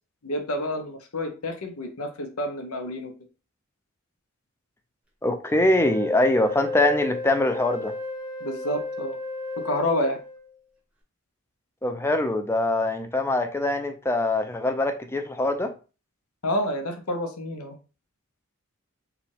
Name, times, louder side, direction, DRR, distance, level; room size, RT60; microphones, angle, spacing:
voice 1, 0.2-3.1 8.4-9.2 9.6-10.2 16.4-17.7, left 1 dB, 80° left, 5 dB, 0.9 m, -29 dB
voice 2, 5.2-7.9 11.8-15.7, left 1 dB, 10° left, 7 dB, 0.4 m, -23 dB
Wind instrument woodwind instrument, 5.8-10.5, left 3 dB, 5° right, 0.8 m, -33 dB
4.8 x 2.4 x 3.4 m, 0.33 s
head